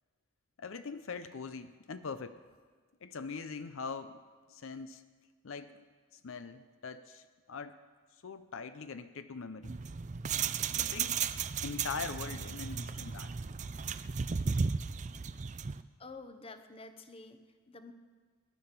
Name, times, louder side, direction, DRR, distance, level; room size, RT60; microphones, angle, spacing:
voice 1, 0.6-2.4 3.0-4.2 4.5-5.0 5.4-5.8 6.1-7.8 8.2-9.8 10.7-11.2 11.6-13.4, left 5 dB, 65° left, 11 dB, 0.6 m, -42 dB
sound 1, 9.6-15.8, right 6 dB, 35° right, 0.4 m, -35 dB
voice 2, 16.0-17.9, left 3 dB, 25° left, 9 dB, 0.8 m, -49 dB
21.0 x 10.5 x 5.9 m, 1.5 s
head